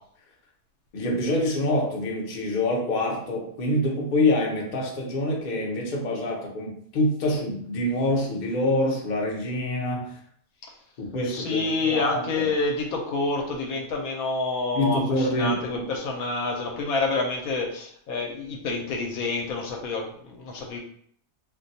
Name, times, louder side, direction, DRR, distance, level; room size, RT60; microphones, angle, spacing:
voice 1, 0.9-10.2 11.0-12.5 14.7-15.8, left 1 dB, 55° left, -2 dB, 0.5 m, -26 dB
voice 2, 11.3-20.8, left 3 dB, 70° left, 1 dB, 1.0 m, -28 dB
2.5 x 2.2 x 4.0 m, 0.63 s
omnidirectional pair, 1.7 m